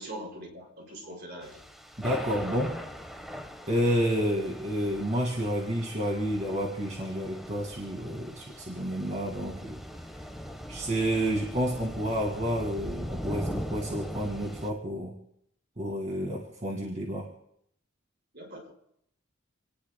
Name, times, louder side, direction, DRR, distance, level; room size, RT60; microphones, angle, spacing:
voice 1, 0.0-1.6 2.5-2.6 18.3-18.7, right 1 dB, 55° right, 0 dB, 4.9 m, -42 dB
Thunder / Rain, 1.4-14.7, equal, ahead, 1.1 m, -41 dB
voice 2, 2.0-2.8 3.7-9.8 10.7-15.1 15.8-17.3, equal, 35° right, -1 dB, 2.0 m, -30 dB
28.0 x 19.0 x 2.2 m, 0.73 s
head